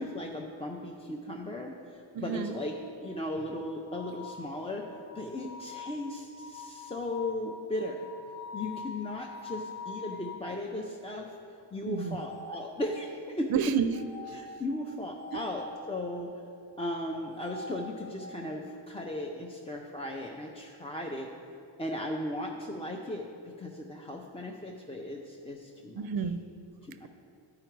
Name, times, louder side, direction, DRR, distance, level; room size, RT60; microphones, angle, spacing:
voice 1, 0.0-2.7 3.0-4.8 5.1-8.1 8.5-13.5 14.3-16.3 16.8-21.3 21.8-26.1 26.8-27.1, left 1 dB, 15° left, -1 dB, 0.4 m, -37 dB
voice 2, 2.1-2.6 11.9-12.2 13.5-14.0 14.3-14.4 15.3-15.4 25.9-26.4, right 7 dB, 55° right, 12 dB, 0.5 m, -30 dB
sound 1, 2.5-10.6 11.9-13.2 13.9-15.9 17.1-18.4, left 3 dB, 35° left, 0.8 m, -45 dB
11.0 x 4.8 x 4.5 m, 2.6 s
wide cardioid pair, 145°, 46 cm